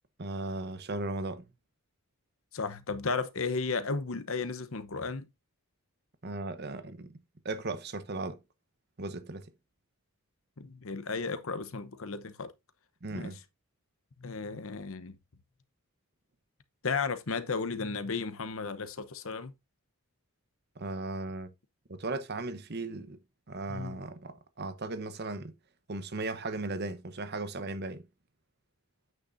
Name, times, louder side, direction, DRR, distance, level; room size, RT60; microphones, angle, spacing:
voice 1, 0.2-1.5 6.2-7.1 7.4-8.4 9.0-9.5 13.0-13.4 20.8-21.5 21.9-23.2 23.5-25.5 25.9-28.1, right 2 dB, 45° right, 0.9 m, -37 dB
voice 2, 2.5-5.3 10.6-12.5 13.1-13.3 14.2-15.2 16.8-19.5 23.7-24.0, left 4 dB, 65° left, 0.9 m, -34 dB
8.8 x 6.4 x 2.6 m
head